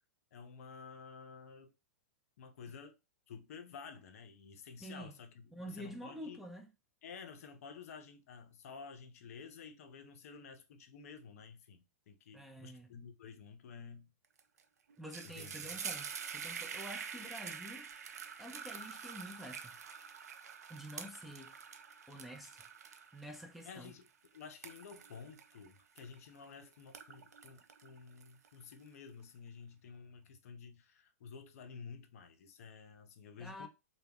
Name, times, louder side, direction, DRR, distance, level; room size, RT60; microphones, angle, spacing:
voice 1, 0.3-1.7 2.4-3.0 3.3-6.4 7.0-14.1 15.2-15.8 23.6-24.1 24.3-33.7, left 5 dB, 65° left, 0.5 m, -52 dB
voice 2, 4.8-5.1 5.5-6.7 12.3-12.9 15.0-19.8 20.7-21.5 22.1-22.6 23.1-23.9 33.4-33.7, equal, ahead, 0.3 m, -48 dB
sound 1, 14.4-14.6 14.9-26.4 26.8-28.7, right 7 dB, 80° right, 0.4 m, -46 dB
2.1 x 2.0 x 3.4 m
hypercardioid pair, 115°, 9 cm